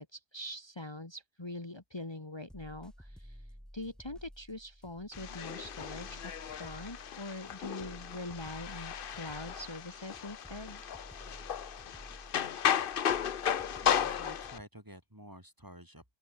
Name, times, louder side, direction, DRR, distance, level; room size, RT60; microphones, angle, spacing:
voice 1, 0.0-10.8, left 1 dB, 20° left, 2.1 m, -43 dB
sound 1, 2.5-14.6, equal, ahead, 0.8 m, -52 dB
sound 2, 5.1-14.6, left 8 dB, 55° left, 0.9 m, -35 dB
voice 2, 13.8-16.0, equal, 15° right, 5.9 m, -51 dB
open air
omnidirectional pair, 1.2 m